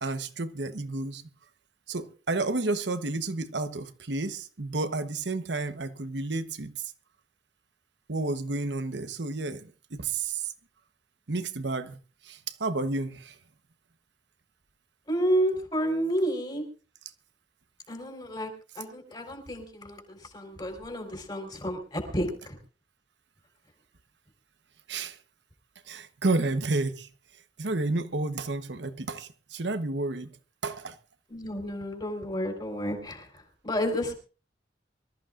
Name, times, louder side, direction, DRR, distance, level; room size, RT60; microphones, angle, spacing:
voice 1, 0.0-1.2 1.9-6.8 8.1-10.5 11.3-12.0 12.2-13.4 24.9-25.2 25.9-27.1 27.6-30.4 30.6-31.0, right 3 dB, 80° right, 1.1 m, -31 dB
voice 2, 15.1-16.6 17.9-18.5 18.8-22.6 31.3-34.1, equal, 25° left, 4.0 m, -31 dB
25.0 x 14.0 x 2.5 m
head